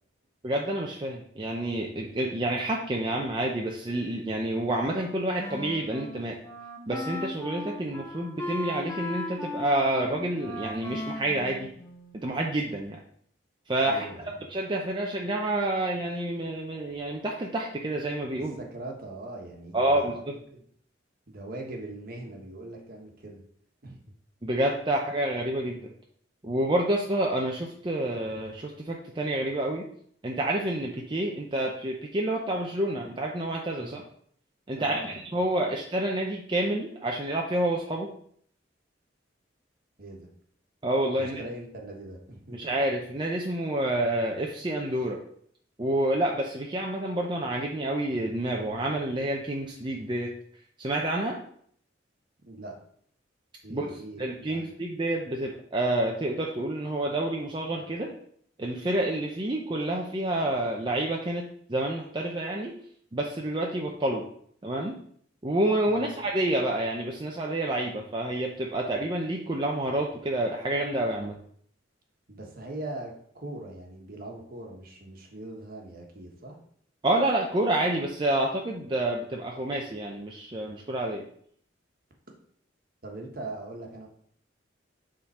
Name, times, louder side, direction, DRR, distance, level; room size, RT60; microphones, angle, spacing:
voice 1, 0.4-6.4 6.9-11.7 12.1-13.0 13.7-14.1 14.5-18.6 19.7-20.3 24.4-25.9 26.4-29.8 30.2-34.0 34.7-38.1 40.8-41.4 42.5-45.2 45.8-50.3 50.8-51.4 53.7-53.9 54.2-58.1 58.6-61.4 61.7-62.7 63.1-64.2 64.6-64.9 65.4-71.4 77.0-81.2, right 1 dB, 25° right, -1 dB, 0.6 m, -28 dB
Wind instrument woodwind instrument, 4.9-12.4, left 1 dB, 15° left, 0.8 m, -37 dB
voice 2, 13.8-14.5 18.4-20.2 20.5-20.6 21.3-23.4 23.8-24.0 33.8-34.0 34.7-35.2 35.7-35.8 40.0-40.3 41.2-42.7 52.4-52.8 53.6-54.7 65.9-66.1 72.3-76.5 83.0-84.1, right 2 dB, 50° right, 1 dB, 1.3 m, -41 dB
7.0 x 3.8 x 4.2 m, 0.62 s
head